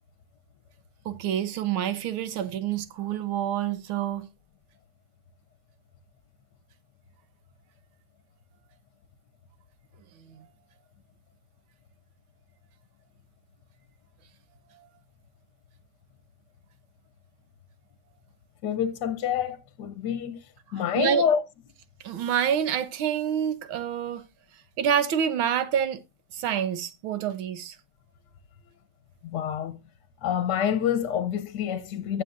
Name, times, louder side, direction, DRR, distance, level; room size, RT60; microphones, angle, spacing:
voice 1, 1.1-4.3 10.3-10.4 21.0-21.2 22.0-24.2 24.8-26.0 26.3-27.8, right 9 dB, 90° right, 1.8 m, -27 dB
voice 2, 18.6-20.4 20.7-21.4 29.2-29.8 30.2-32.2, left 8 dB, 65° left, 1.3 m, -27 dB
15.0 x 7.4 x 2.5 m
omnidirectional pair, 2.2 m